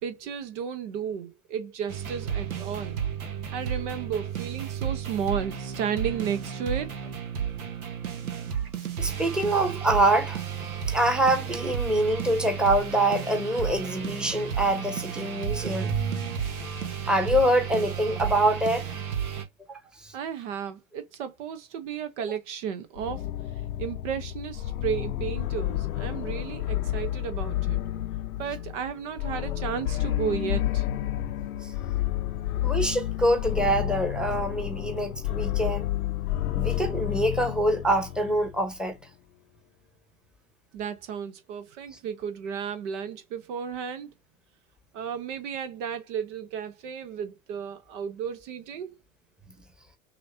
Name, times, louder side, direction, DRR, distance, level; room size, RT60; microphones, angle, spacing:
voice 1, 0.0-3.0 3.5-6.9 20.1-23.2 23.8-27.8 28.4-30.8 40.7-44.1 44.9-48.9, right 7 dB, 55° right, 1.0 m, -33 dB
sound 1, 1.9-19.4, right 8 dB, 80° right, 1.3 m, -33 dB
voice 2, 9.0-10.4 10.9-16.3 17.0-18.9 19.7-20.1 32.6-35.9 36.5-39.0, right 1 dB, ahead, 1.1 m, -25 dB
sound 2, 23.0-38.6, left 13 dB, 80° left, 0.6 m, -30 dB
6.2 x 2.9 x 2.7 m
hypercardioid pair, 95°, 43 cm